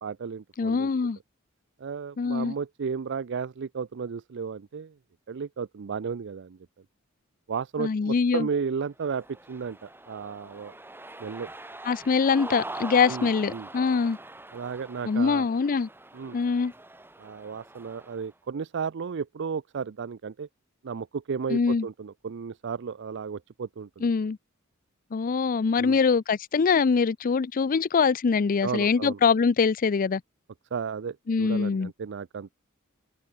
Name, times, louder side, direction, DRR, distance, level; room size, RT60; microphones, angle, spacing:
voice 1, 0.0-0.9 1.8-4.9 5.3-6.6 7.5-10.7 11.2-11.5 13.1-13.7 14.5-15.5 16.1-16.4 17.2-20.5 20.8-24.1 25.8-26.0 28.6-29.2 30.7-32.5, right 6 dB, 60° right, 0.5 m, -34 dB
voice 2, 0.6-1.2 2.2-2.5 7.8-8.5 11.9-14.2 15.0-15.9 16.3-16.7 21.5-21.9 24.0-24.4 25.1-30.2 31.3-31.9, left 5 dB, 40° left, 0.4 m, -23 dB
Cheering, 9.0-18.3, right 2 dB, 10° right, 3.4 m, -43 dB
head